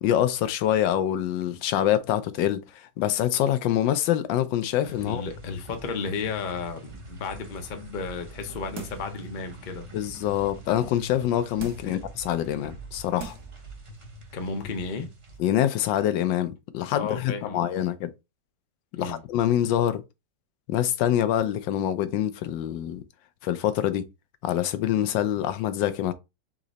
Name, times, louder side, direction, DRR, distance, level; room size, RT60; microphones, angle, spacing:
voice 1, 0.0-5.2 9.9-13.3 15.4-18.1 19.0-20.0 20.7-23.0 23.4-24.0 24.4-26.1, left 11 dB, 90° left, 1.3 m, -25 dB
sound 1, 4.8-15.4, right 2 dB, 30° right, 0.6 m, -44 dB
voice 2, 5.0-9.9 11.8-12.0 14.3-15.1 17.0-17.9 18.9-19.2, left 5 dB, 60° left, 0.4 m, -33 dB
sound 2, 8.7-9.2 9.7-9.8 11.6-12.0 12.7-12.8 13.2-13.6 14.0-14.1, right 6 dB, 50° right, 1.0 m, -40 dB
3.9 x 3.1 x 3.9 m
omnidirectional pair, 1.9 m